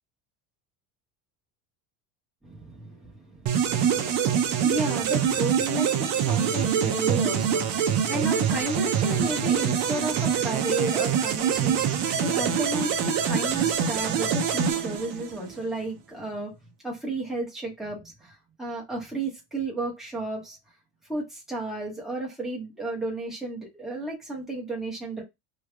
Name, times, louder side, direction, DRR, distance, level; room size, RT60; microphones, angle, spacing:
voice 1, 2.4-4.2 4.5-16.5 16.8-20.6 21.1-25.2, right 2 dB, ahead, 1.0 m, -33 dB
sound 1, 3.5-15.5, right 8 dB, 45° right, 0.6 m, -25 dB
3.3 x 2.3 x 3.4 m
cardioid pair, 175°, 39 cm